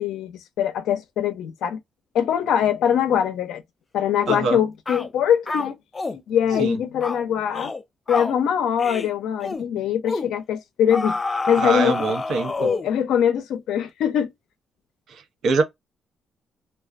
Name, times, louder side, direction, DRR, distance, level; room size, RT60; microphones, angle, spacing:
voice 1, 0.0-1.8 2.1-3.6 3.9-5.8 6.1-7.7 8.1-11.2 11.5-12.1 12.6-14.3, left 9 dB, 80° left, 0.5 m, -22 dB
sound 1, 4.3-4.5 4.9-5.1 5.5-6.2 6.5-6.7 7.0-7.2 7.5-7.8 8.1-8.4 8.8-9.1 9.4-9.6 10.1-10.3 10.9-13.0, left 3 dB, 25° left, 0.4 m, -28 dB
voice 2, 4.3-4.6 6.6-6.8 11.6-12.7 15.1-15.6, right 4 dB, 70° right, 0.8 m, -24 dB
2.3 x 2.2 x 2.4 m
cardioid pair, 90°, 0 cm